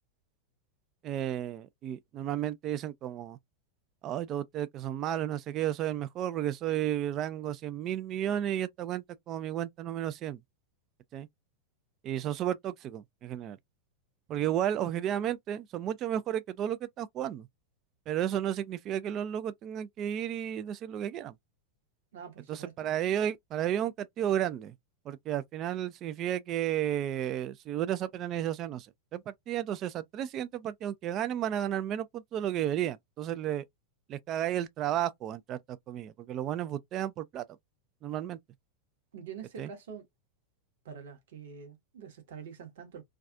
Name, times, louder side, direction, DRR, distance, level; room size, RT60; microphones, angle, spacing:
voice 1, 1.0-3.4 4.0-10.4 11.1-11.3 12.0-13.6 14.3-17.5 18.1-21.3 22.5-24.7 25.1-28.9 29.1-33.6 34.1-37.4 38.0-38.4 39.6-39.7, right 11 dB, 35° right, 0.3 m, -33 dB
voice 2, 22.1-22.9 39.1-40.0 40.8-43.0, right 7 dB, 55° right, 0.8 m, -45 dB
2.3 x 2.3 x 2.5 m
figure-of-eight pair, 90°, 0 cm